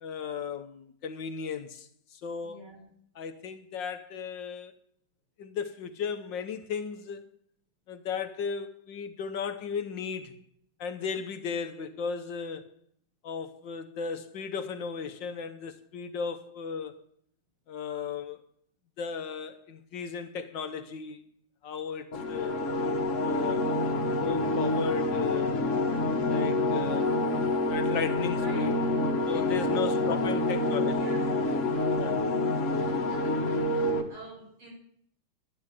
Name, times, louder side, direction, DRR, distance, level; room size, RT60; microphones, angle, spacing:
voice 1, 0.0-2.6 3.2-4.7 5.4-7.3 7.9-10.4 10.8-12.7 13.2-17.0 17.7-18.4 19.0-21.2 21.6-22.6 23.2-23.7 24.2-25.5 26.3-27.1 27.7-28.7 29.3-31.2 31.9-32.2, left 6 dB, 65° left, 1.6 m, -35 dB
voice 2, 2.4-2.8 27.1-27.4 28.2-30.0 30.9-31.4 33.1-33.3 33.7-34.7, right 2 dB, 75° right, 5.9 m, -47 dB
sound 1, 22.1-34.0, left 2 dB, 40° left, 1.6 m, -27 dB
12.5 x 9.6 x 8.9 m
omnidirectional pair, 2.2 m